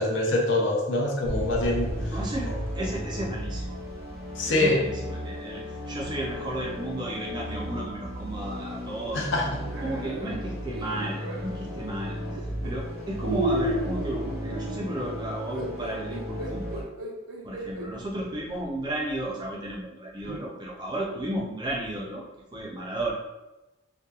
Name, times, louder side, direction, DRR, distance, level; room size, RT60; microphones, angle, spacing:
voice 1, 0.0-2.1 4.4-4.8 9.1-9.6, left 2 dB, 65° left, -1 dB, 0.6 m, -25 dB
sound 1, 1.2-16.8, equal, 30° left, 1.2 m, -35 dB
voice 2, 2.1-3.8 4.5-16.8 17.4-22.2 22.5-23.1, right 1 dB, 20° right, -3 dB, 0.4 m, -33 dB
sound 2, 9.6-11.5 12.3-12.7 13.2-17.9 18.5-18.6 20.2-20.5, right 1 dB, 90° right, 0.5 m, -33 dB
2.8 x 2.2 x 2.3 m, 1.0 s
head